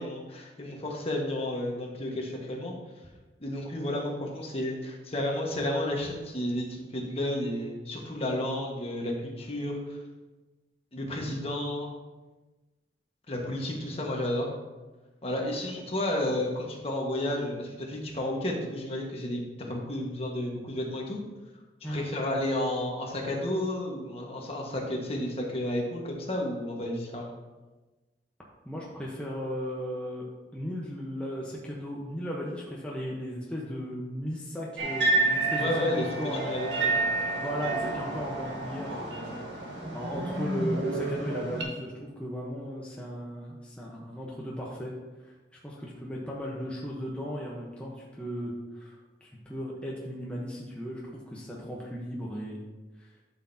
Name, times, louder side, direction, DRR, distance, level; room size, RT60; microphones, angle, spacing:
voice 1, 0.0-2.7 3.4-10.0 10.9-11.9 13.3-14.5 15.2-21.2 21.8-27.4 35.6-37.1, left 1 dB, 35° left, -1 dB, 1.5 m, -32 dB
voice 2, 28.6-30.2 30.5-36.5 37.4-39.4 39.9-44.9 45.6-51.0 51.3-52.6 53.0-53.1, equal, 5° left, -4 dB, 1.0 m, -36 dB
sound 1, 34.8-41.6, right 2 dB, 85° right, 1.6 m, -30 dB
12.0 x 6.3 x 2.8 m, 1.2 s
head